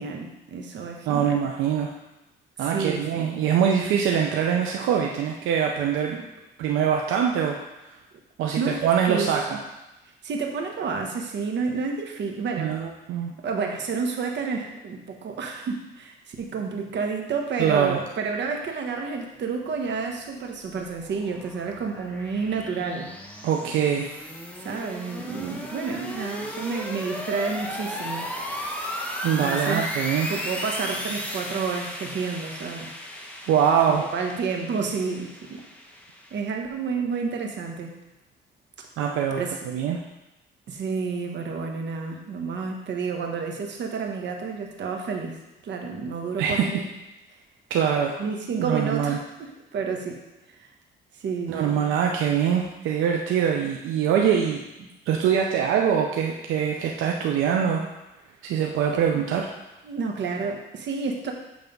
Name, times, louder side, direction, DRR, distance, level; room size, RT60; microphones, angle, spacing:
voice 1, 0.0-1.4 2.6-3.4 8.5-9.3 10.2-12.7 13.4-23.1 24.6-28.3 29.3-29.9 30.2-32.9 33.9-35.6 36.3-37.9 39.4-39.6 40.7-45.4 45.6-46.8 48.2-50.2 50.6-50.7 51.2-51.9 54.8-54.9 59.8-61.3, right 5 dB, 65° right, 2 dB, 1.2 m, -30 dB
voice 2, 1.1-1.9 2.6-6.3 6.6-7.6 8.4-9.6 12.6-13.3 17.6-18.0 23.4-24.1 29.2-30.3 33.5-34.1 39.0-40.0 46.4-46.8 47.7-48.2 48.6-49.2 51.5-54.6 55.1-57.9 58.4-59.5, right 8 dB, 90° right, 1 dB, 0.6 m, -23 dB
sound 1, 20.3-36.4, left 1 dB, 5° left, 1.0 m, -35 dB
8.0 x 3.4 x 5.3 m, 0.98 s
cardioid pair, 90°, 20 cm